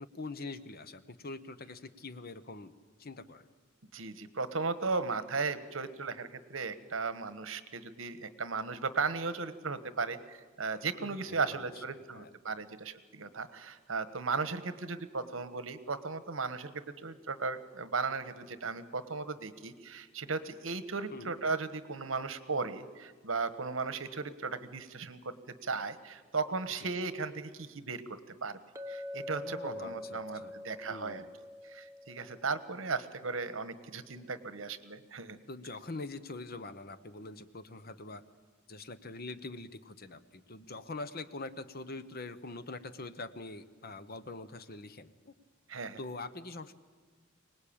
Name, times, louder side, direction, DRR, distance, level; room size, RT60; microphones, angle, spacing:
voice 1, 0.0-2.7 3.0-3.5 11.0-11.8 12.1-12.3 21.1-21.3 26.8-26.9 29.5-30.5 30.9-31.3 35.5-38.2 38.7-45.3 46.0-46.7, left 3 dB, 45° left, 12 dB, 1.0 m, -44 dB
voice 2, 3.9-25.3 25.6-28.6 28.9-31.2 31.6-35.4 45.7-46.0, right 4 dB, 70° right, 13 dB, 1.3 m, -36 dB
Chink clink, 28.8-32.9, left 1 dB, 15° right, 1.0 m, -44 dB
24.5 x 19.5 x 8.8 m, 1.4 s
head